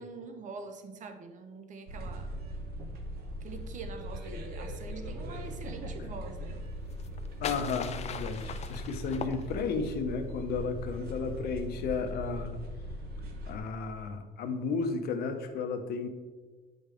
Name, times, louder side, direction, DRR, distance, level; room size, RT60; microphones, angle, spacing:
voice 1, 0.0-2.3 3.4-6.6, right 4 dB, 50° right, 7 dB, 0.9 m, -44 dB
sound 1, 1.9-13.6, equal, 65° right, 1.1 m, -40 dB
sound 2, 6.9-10.0, left 7 dB, 40° left, 0.5 m, -40 dB
voice 2, 7.4-12.6 13.5-16.1, left 4 dB, 70° left, 6 dB, 0.9 m, -33 dB
8.8 x 5.2 x 3.4 m, 1.3 s
cardioid pair, 110°, 17 cm